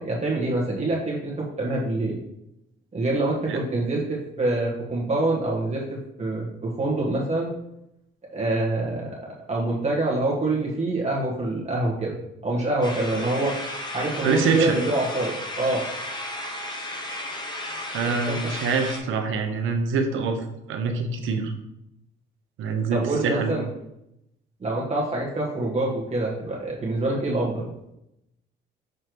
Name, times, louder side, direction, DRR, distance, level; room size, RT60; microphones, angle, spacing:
voice 1, 0.0-2.2 2.9-7.5 8.3-13.5 13.9-15.8 18.0-18.5 22.9-23.6 24.6-27.7, right 2 dB, 35° right, -4 dB, 1.5 m, -26 dB
sound 1, 12.8-19.0, left 1 dB, 20° left, 1.2 m, -34 dB
voice 2, 14.2-14.8 17.9-20.4 20.7-21.5 22.6-23.5, right 4 dB, 85° right, 5 dB, 0.9 m, -25 dB
6.6 x 3.2 x 4.6 m, 0.85 s
cardioid pair, 90°, 20 cm